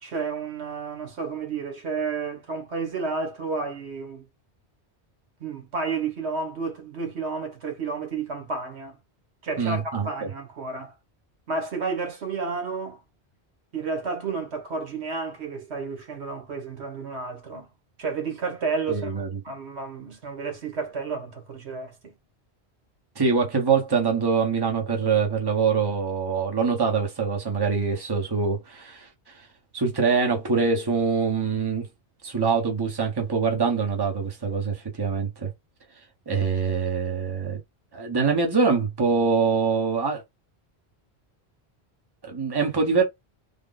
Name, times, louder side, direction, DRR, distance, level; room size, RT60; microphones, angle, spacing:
voice 1, 0.0-4.2 5.4-9.0 9.4-10.9 11.5-13.0 13.7-17.7 18.0-22.1, right 4 dB, 75° right, 1.4 m, -31 dB
voice 2, 9.6-10.3 18.9-19.4 23.2-29.1 29.7-31.9 32.2-35.5 36.3-37.6 37.9-40.2 42.2-43.0, right 5 dB, 25° right, 1.0 m, -24 dB
3.6 x 2.2 x 3.8 m
omnidirectional pair, 1.1 m